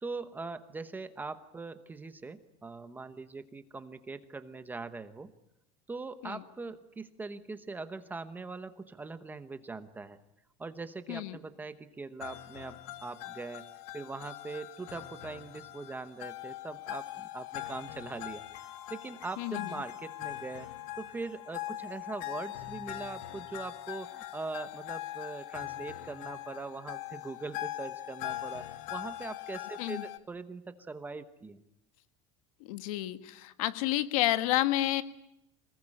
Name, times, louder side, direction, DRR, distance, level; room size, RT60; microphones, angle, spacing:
voice 1, 0.0-5.3 5.9-10.2 10.6-18.4 18.9-20.7 21.0-31.6, right 3 dB, 10° right, 10 dB, 1.0 m, -41 dB
sound 1, 12.2-30.2, left 15 dB, 65° left, 1.8 m, -42 dB
voice 2, 19.4-19.7 29.8-30.0 32.7-35.0, left 15 dB, 85° left, 11 dB, 1.6 m, -30 dB
26.5 x 20.0 x 9.9 m, 0.85 s
cardioid pair, 170°, 17 cm